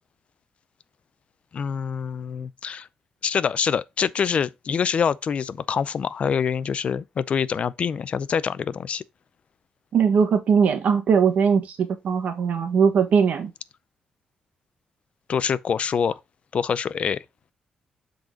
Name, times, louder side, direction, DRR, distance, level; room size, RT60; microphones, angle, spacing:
voice 1, 1.5-2.9 3.2-9.0 15.3-16.2 16.5-17.2, left 7 dB, 50° left, 0.5 m, -25 dB
voice 2, 9.9-13.5, right 6 dB, 65° right, 1.4 m, -20 dB
7.4 x 4.0 x 3.8 m
cardioid pair, 105°, 3 cm